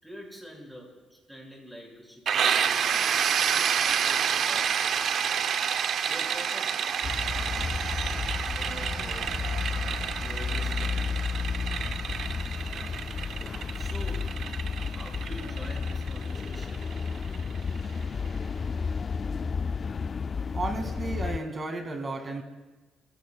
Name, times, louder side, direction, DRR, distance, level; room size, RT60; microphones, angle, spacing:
voice 1, 0.0-3.2 3.7-5.1 6.1-8.0 8.5-9.4 10.1-11.1 13.7-14.4 14.8-16.9, equal, 5° right, -1 dB, 6.2 m, -46 dB
sound 1, 2.3-17.8, right 8 dB, 65° right, 0.7 m, -29 dB
sound 2, 7.0-21.4, left 5 dB, 40° left, 0.4 m, -32 dB
voice 2, 20.4-22.4, right 2 dB, 35° right, 5 dB, 2.3 m, -33 dB
29.5 x 16.5 x 2.4 m, 1.2 s
cardioid pair, 90°, 0 cm